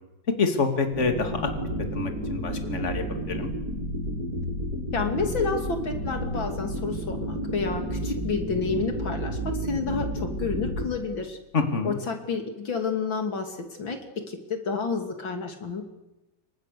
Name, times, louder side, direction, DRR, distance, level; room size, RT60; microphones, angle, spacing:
voice 1, 0.4-1.5 1.9-3.5 11.5-12.0, left 4 dB, 35° left, 5 dB, 2.9 m, -27 dB
sound 1, 0.9-10.8, equal, 50° right, 6.2 m, -31 dB
voice 2, 4.9-11.4 11.8-14.0 14.3-15.8, left 4 dB, 70° left, 5 dB, 3.5 m, -30 dB
30.0 x 24.5 x 6.9 m, 0.99 s
omnidirectional pair, 2.2 m